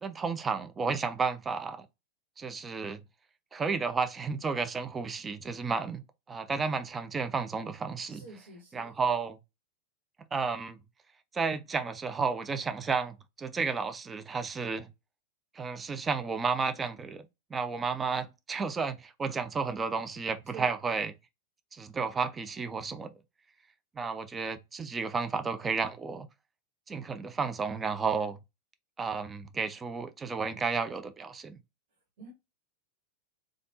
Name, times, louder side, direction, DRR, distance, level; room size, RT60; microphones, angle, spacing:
voice 1, 0.0-1.9 2.4-3.0 3.5-8.3 8.7-9.4 10.3-10.8 11.3-14.9 15.5-17.2 17.5-21.1 21.7-23.1 24.0-26.3 26.9-28.4 29.0-31.6, right 5 dB, 15° right, 0.4 m, -32 dB
voice 2, 8.1-8.9 20.5-20.7 32.2-32.3, right 4 dB, 55° right, 1.4 m, -47 dB
3.3 x 2.4 x 2.5 m
figure-of-eight pair, 90°, 0 cm